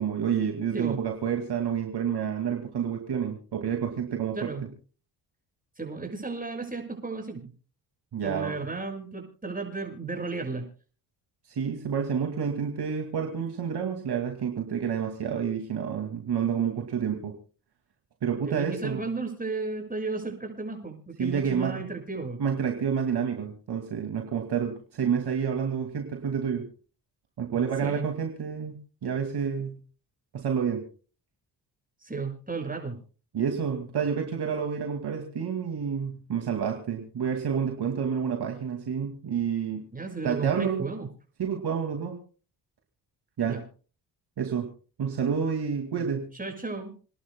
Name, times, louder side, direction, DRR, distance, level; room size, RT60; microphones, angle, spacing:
voice 1, 0.0-4.5 8.1-8.5 11.5-17.4 18.2-19.0 21.2-21.8 22.4-26.7 27.4-29.8 30.3-30.8 33.3-39.8 40.2-40.9 41.4-42.2 43.4-43.6 44.4-44.7 45.0-46.3, right 7 dB, 55° right, 3 dB, 2.3 m, -29 dB
voice 2, 4.3-4.7 5.8-7.5 8.2-10.7 18.4-22.4 27.8-28.1 32.0-33.0 39.9-41.1 43.4-43.6 45.9-46.9, right 3 dB, 20° right, 2 dB, 6.7 m, -34 dB
29.0 x 11.5 x 2.2 m, 0.38 s
supercardioid pair, 60°, 45 cm